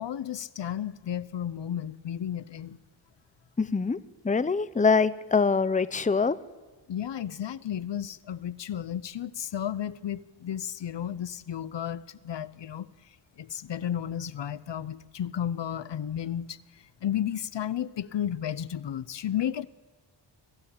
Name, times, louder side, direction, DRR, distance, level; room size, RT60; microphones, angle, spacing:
voice 1, 0.0-2.8 6.9-12.9 13.4-16.6 17.0-19.6, left 10 dB, 65° left, 0.8 m, -33 dB
voice 2, 3.6-4.0 4.2-6.4, left 4 dB, 15° left, 0.7 m, -24 dB
25.5 x 15.5 x 8.7 m
wide cardioid pair, 100°, 45 cm